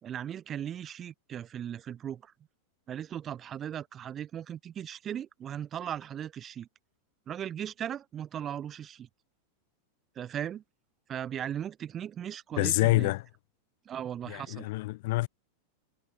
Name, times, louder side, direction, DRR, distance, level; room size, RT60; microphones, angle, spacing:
voice 1, 0.0-2.3 2.9-6.7 7.3-9.1 10.2-10.6 11.1-13.1 13.9-14.7, right 9 dB, 25° right, 4.0 m, -37 dB
voice 2, 12.6-13.2 14.3-15.3, left 20 dB, 50° left, 2.1 m, -27 dB
figure-of-eight pair, 90°, 0 cm